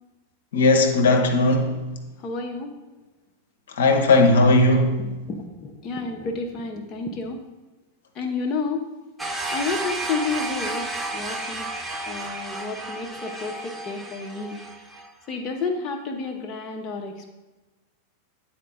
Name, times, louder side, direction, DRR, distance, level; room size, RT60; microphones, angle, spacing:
voice 1, 0.5-1.9 3.8-5.0, left 2 dB, 60° left, 3 dB, 0.8 m, -18 dB
voice 2, 2.2-2.7 5.0-7.4 8.1-8.8 9.5-11.7 12.1-14.6 15.3-17.3, left 4 dB, 30° left, 2 dB, 0.7 m, -30 dB
sound 1, 9.2-15.1, right 2 dB, 10° right, 0.7 m, -32 dB
9.3 x 4.3 x 3.7 m, 1.1 s
figure-of-eight pair, 90°, 0 cm